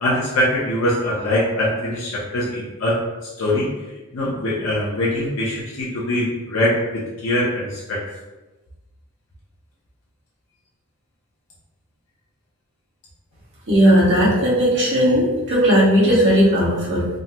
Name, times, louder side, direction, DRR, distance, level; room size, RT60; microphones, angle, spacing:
voice 1, 0.0-3.0 3.4-3.7 4.1-8.0, left 1 dB, 65° left, -6 dB, 0.6 m, -22 dB
voice 2, 13.7-17.1, equal, 55° right, -8 dB, 1.2 m, -16 dB
3.6 x 2.0 x 2.7 m, 1.1 s
head